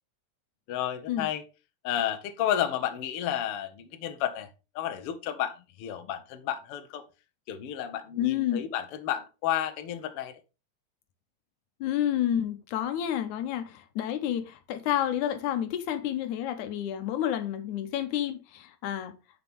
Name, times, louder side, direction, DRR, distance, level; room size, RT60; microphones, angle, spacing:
voice 1, 0.7-1.4 1.8-4.5 4.7-7.0 7.5-10.4, left 11 dB, 65° left, 1.7 m, -31 dB
voice 2, 8.2-8.6 11.8-19.1, left 11 dB, 85° left, 2.3 m, -30 dB
10.0 x 5.9 x 3.6 m
omnidirectional pair, 3.3 m